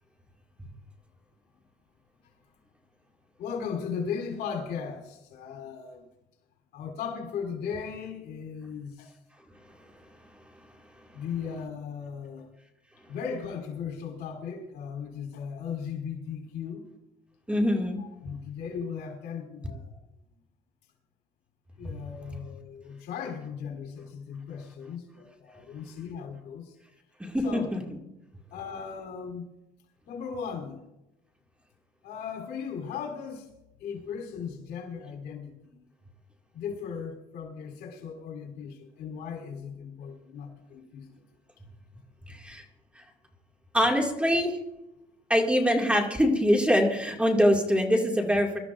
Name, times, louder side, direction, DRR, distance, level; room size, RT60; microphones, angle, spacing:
voice 1, 3.4-6.1 6.7-9.1 11.1-12.5 13.1-16.9 18.0-19.9 21.8-26.8 27.4-27.7 28.5-29.5 30.0-30.8 32.0-33.5 33.8-35.8 36.5-41.1, left 6 dB, 85° left, 3.4 m, -37 dB
voice 2, 17.5-18.0 21.8-21.9 27.2-27.4 27.7-27.8 42.3-42.6 43.7-44.6 45.3-48.6, equal, 5° right, 2.2 m, -24 dB
25.0 x 13.0 x 2.5 m
cardioid pair, 110°, 17 cm